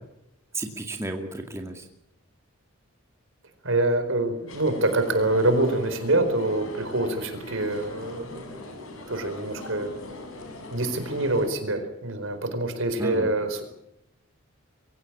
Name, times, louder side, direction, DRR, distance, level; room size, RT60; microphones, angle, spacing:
voice 1, 0.5-1.8 13.0-13.3, right 2 dB, 15° right, 3 dB, 2.2 m, -33 dB
voice 2, 3.6-8.6 9.1-9.9 10.7-13.6, right 2 dB, 65° right, 8 dB, 4.5 m, -25 dB
sound 1, 4.5-11.5, left 2 dB, 75° left, 6.1 m, -41 dB
23.5 x 17.0 x 8.7 m, 0.83 s
head